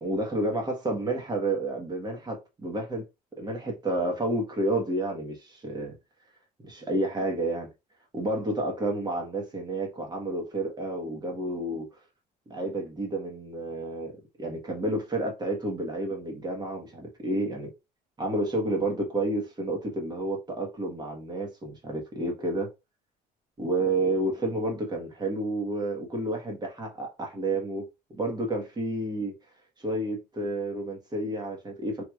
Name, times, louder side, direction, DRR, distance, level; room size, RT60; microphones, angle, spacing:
voice 1, 0.0-3.0 3.4-5.9 6.6-7.7 8.1-11.9 12.5-14.1 14.4-17.7 18.2-22.7 23.6-27.8 28.1-29.3 29.8-32.0, right 1 dB, 25° right, 1.3 m, -30 dB
3.1 x 2.8 x 2.4 m
cardioid pair, 110°, 17 cm